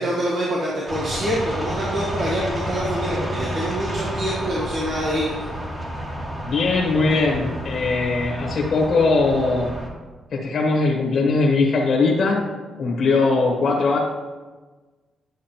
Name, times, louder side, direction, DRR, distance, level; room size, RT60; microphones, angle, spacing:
voice 1, 0.0-5.3, right 1 dB, 60° right, -5 dB, 1.6 m, -25 dB
sound 1, 0.9-9.9, equal, 30° right, 1.6 m, -30 dB
voice 2, 6.4-9.7 10.3-12.5 12.8-14.0, left 3 dB, 55° left, -1 dB, 1.2 m, -20 dB
10.5 x 6.2 x 2.9 m, 1.3 s
cardioid pair, 100°, 0 cm